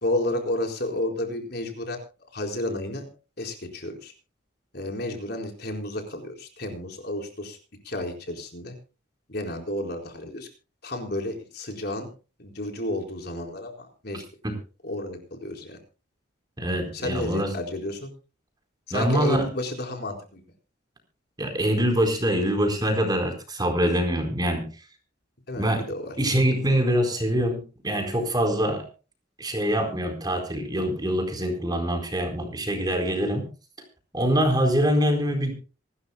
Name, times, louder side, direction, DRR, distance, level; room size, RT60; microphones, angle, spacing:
voice 1, 0.0-2.0 2.3-3.1 3.4-4.1 4.7-7.6 7.8-8.7 9.3-10.5 10.8-12.1 12.4-14.2 14.8-15.8 16.9-18.1 18.9-20.4 25.5-26.2, left 1 dB, 55° left, 3 dB, 4.3 m, -31 dB
voice 2, 16.6-17.5 18.9-19.5 21.4-24.7 25.6-25.9 26.2-28.9 29.4-33.4 34.1-35.5, equal, 20° right, 4 dB, 4.2 m, -24 dB
27.0 x 12.5 x 2.3 m, 0.34 s
head